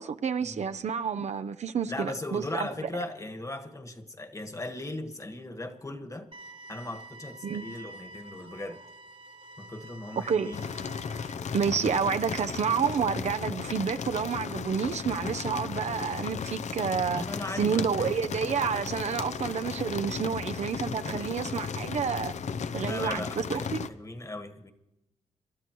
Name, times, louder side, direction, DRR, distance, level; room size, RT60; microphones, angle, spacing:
voice 1, 0.0-2.9 7.4-7.7 10.3-10.5 11.5-17.2 17.5-22.3 22.7-23.9, right 6 dB, 65° right, 0.6 m, -29 dB
voice 2, 1.9-6.3 6.7-8.8 9.6-10.8 17.1-18.1 21.0-21.6 22.8-24.7, left 2 dB, 25° left, 1.5 m, -38 dB
sound 1, 6.3-11.3, right 1 dB, 40° right, 1.5 m, -48 dB
sound 2, 10.5-23.9, left 6 dB, 65° left, 0.7 m, -35 dB
27.0 x 12.5 x 3.1 m
cardioid pair, 70°, 13 cm